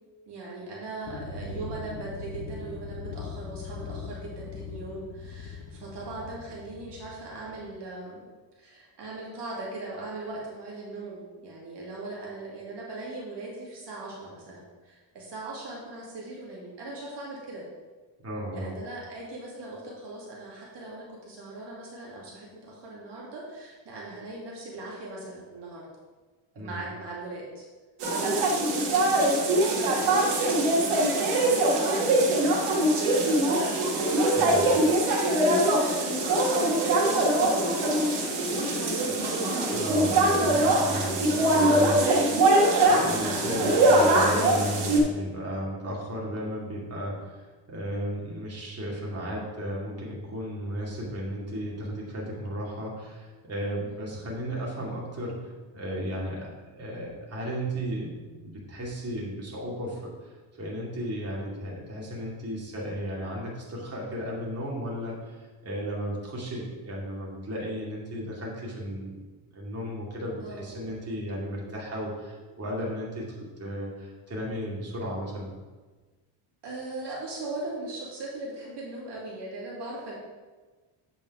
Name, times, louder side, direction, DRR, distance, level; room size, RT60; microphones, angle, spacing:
voice 1, 0.3-8.2 8.5-17.7 18.5-25.9 26.5-27.7 28.0-33.0 34.0-39.2 53.8-54.2 70.4-70.7 76.6-80.1, right 2 dB, 55° right, -4 dB, 2.4 m, -39 dB
sound 1, 1.0-7.7, left 4 dB, 75° left, 1.3 m, -40 dB
voice 2, 18.2-18.7 26.5-26.8 34.4-34.7 39.7-69.2 69.5-75.5, equal, 30° right, -4 dB, 2.5 m, -35 dB
sound 2, 28.0-45.0, right 1 dB, 85° right, 1.8 m, -23 dB
8.0 x 5.4 x 4.8 m, 1.3 s
cardioid pair, 120°, 48 cm